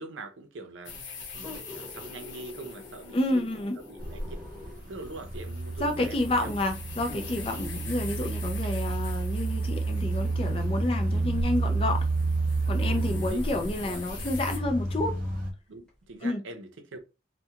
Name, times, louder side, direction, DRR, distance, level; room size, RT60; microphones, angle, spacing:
voice 1, 0.0-3.5 3.9-4.2 4.8-6.5 8.6-8.8 12.9-13.4 13.8-14.0 15.7-17.0, right 2 dB, 90° right, 0.6 m, -43 dB
sound 1, 0.8-14.6, left 5 dB, 75° left, 0.8 m, -45 dB
sound 2, 1.4-5.0 5.9-6.0 7.1-11.0 12.0-12.1 12.8-15.4 15.9-16.0, left 2 dB, 5° left, 0.9 m, -48 dB
voice 2, 3.1-3.8 5.8-12.1 12.7-15.2 16.2-16.4, left 1 dB, 30° left, 0.4 m, -29 dB
sound 3, 4.0-15.5, right 3 dB, 45° right, 0.6 m, -30 dB
2.3 x 2.2 x 2.8 m
head